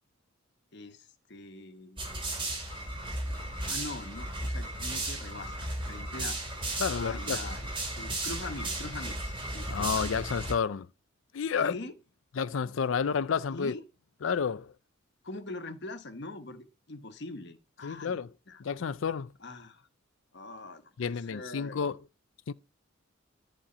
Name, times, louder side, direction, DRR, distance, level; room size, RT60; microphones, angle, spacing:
voice 1, 0.7-2.1 3.2-6.6 6.9-7.7 8.0-10.1 11.6-12.0 13.5-13.8 15.2-18.2 18.5-18.6 19.4-19.9 20.3-21.9, left 2 dB, 55° left, 1.2 m, -43 dB
sound 1, 2.0-10.5, right 1 dB, 25° right, 3.2 m, -35 dB
voice 2, 6.8-7.5 9.7-10.9 11.3-11.7 12.4-13.7 14.2-14.7 17.8-18.3 18.6-19.3 21.0-22.0 22.5-22.6, left 6 dB, 70° left, 0.4 m, -30 dB
11.5 x 4.4 x 6.8 m
head